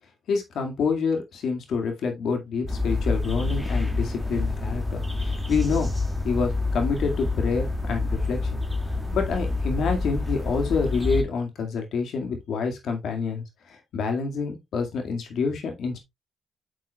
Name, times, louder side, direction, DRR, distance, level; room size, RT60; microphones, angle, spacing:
voice 1, 0.3-5.9 6.2-8.4 9.1-13.4 13.9-16.0, left 5 dB, 70° left, 2.0 m, -27 dB
sound 1, 2.7-11.2, left 3 dB, ahead, 2.2 m, -27 dB
9.2 x 6.0 x 2.3 m
supercardioid pair, 55°, 0 cm